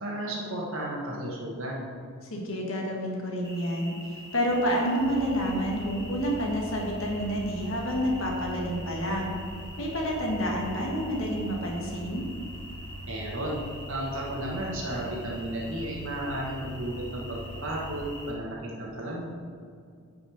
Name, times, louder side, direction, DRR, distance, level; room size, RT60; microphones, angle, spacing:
voice 1, 0.0-1.9 13.1-13.6 13.9-19.3, right 1 dB, 60° right, -4 dB, 1.5 m, -33 dB
voice 2, 2.3-3.9 4.3-9.4 9.8-12.2, equal, 60° left, -1 dB, 1.5 m, -29 dB
sound 1, 3.4-18.3, left 1 dB, 15° left, 1.6 m, -46 dB
sound 2, 5.0-18.1, right 1 dB, 45° left, 2.0 m, -42 dB
9.4 x 5.3 x 4.9 m, 2.3 s
head